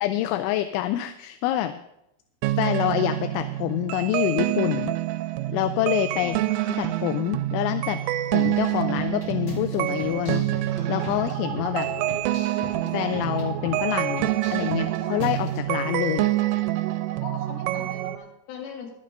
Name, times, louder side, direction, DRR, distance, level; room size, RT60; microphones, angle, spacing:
voice 1, 0.0-1.7 2.6-4.9 5.5-6.4 6.8-8.0 8.3-10.5 10.9-11.9 12.8-16.3, left 13 dB, 85° left, 9 dB, 2.9 m, -26 dB
sound 1, 2.4-18.2, right 15 dB, 90° right, 3.1 m, -27 dB
sound 2, 5.8-5.9 6.5-7.4 8.3-8.4 9.2-9.4 10.1-10.3 10.7-11.7 12.9-13.1, right 3 dB, 55° right, 2.3 m, -47 dB
sound 3, 8.3-15.6, left 3 dB, 35° left, 2.7 m, -40 dB
voice 2, 17.2-18.9, left 5 dB, 60° left, 0 dB, 3.7 m, -40 dB
23.0 x 11.0 x 2.6 m, 0.82 s
omnidirectional pair, 5.5 m